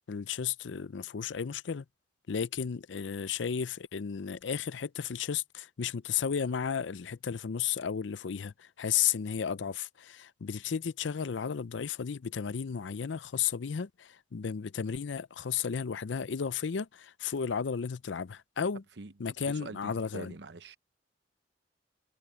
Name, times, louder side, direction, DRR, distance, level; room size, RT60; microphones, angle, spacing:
voice 1, 0.1-1.8 2.3-18.8 19.2-20.3, left 7 dB, 80° left, 0.5 m, -33 dB
voice 2, 19.0-20.8, right 3 dB, 65° right, 0.9 m, -45 dB
head